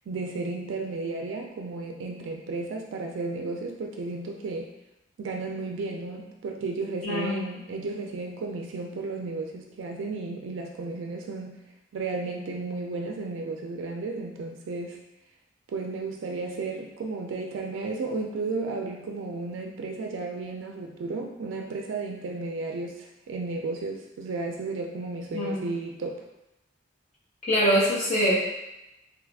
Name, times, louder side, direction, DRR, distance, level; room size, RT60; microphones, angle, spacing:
voice 1, 0.1-4.7 5.2-11.6 11.9-15.0 15.7-26.3, right 3 dB, 80° right, 2 dB, 0.3 m, -33 dB
voice 2, 7.0-7.4 25.3-25.7 27.4-28.3, equal, 35° left, -8 dB, 1.0 m, -24 dB
3.0 x 2.3 x 3.3 m, 0.93 s
head